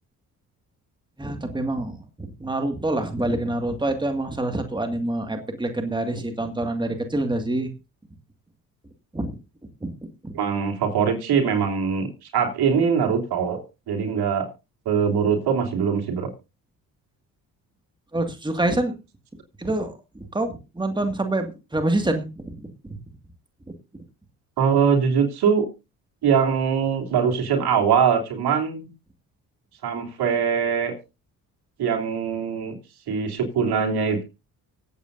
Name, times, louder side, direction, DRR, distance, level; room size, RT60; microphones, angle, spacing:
voice 1, 1.2-7.7 9.1-9.4 9.8-9.9 10.2-10.4 18.1-19.0 19.6-23.0 23.9-24.0, right 2 dB, 10° right, 6 dB, 2.0 m, -26 dB
voice 2, 10.3-12.1 12.3-13.6 13.9-14.5 14.8-16.3 24.6-25.7 26.2-28.9 29.8-30.9 31.8-32.7 33.1-34.2, right 6 dB, 70° right, 2 dB, 3.1 m, -22 dB
24.5 x 8.2 x 2.6 m, 0.28 s
supercardioid pair, 60°, 40 cm